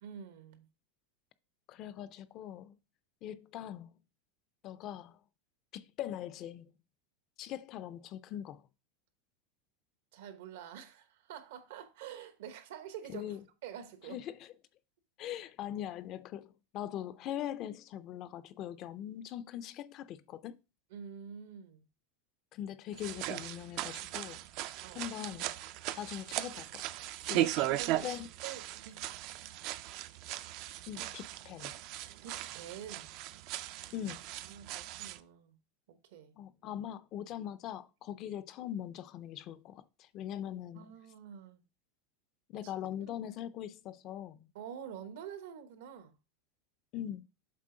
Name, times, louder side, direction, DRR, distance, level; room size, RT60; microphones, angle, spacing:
voice 1, 0.0-0.7 10.1-13.3 13.6-14.2 20.9-21.8 24.8-25.0 27.2-28.0 28.4-29.0 31.0-31.1 32.2-33.1 34.4-35.6 35.9-36.3 40.7-41.6 42.6-42.7 44.5-46.2, right 9 dB, 75° right, 1.0 m, -47 dB
voice 2, 1.7-2.8 3.2-4.0 4.6-5.2 5.7-6.7 7.4-8.7 13.1-13.4 14.0-14.5 15.2-20.6 22.5-24.4 24.9-25.5 26.0-26.9 27.3-27.7 28.0-28.3 30.9-31.7 33.9-34.2 36.4-40.9 42.5-44.5 46.9-47.2, left 11 dB, 40° left, 0.4 m, -41 dB
sound 1, 22.9-35.2, right 15 dB, 50° right, 0.4 m, -38 dB
7.4 x 4.1 x 3.8 m
supercardioid pair, 150°, 0 cm